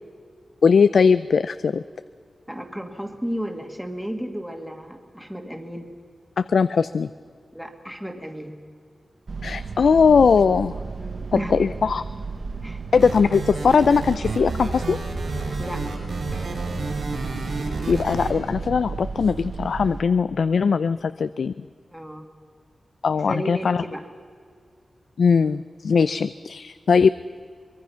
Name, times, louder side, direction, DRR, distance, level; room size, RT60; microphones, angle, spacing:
voice 1, 0.6-1.8 6.4-7.1 9.4-10.7 11.3-12.0 12.9-15.0 17.9-21.5 23.0-23.8 25.2-27.1, left 5 dB, 75° left, 14 dB, 0.4 m, -19 dB
voice 2, 2.5-5.9 7.5-8.5 11.0-11.5 12.6-12.8 15.6-15.8 16.3-16.8 21.9-22.3 23.2-24.0, equal, 5° right, 4 dB, 1.8 m, -33 dB
sound 1, 9.3-20.0, right 4 dB, 50° right, 0.9 m, -33 dB
sound 2, 13.0-18.3, right 3 dB, 80° right, 6.3 m, -31 dB
24.0 x 22.5 x 5.7 m, 2.2 s
wide cardioid pair, 165°, 0 cm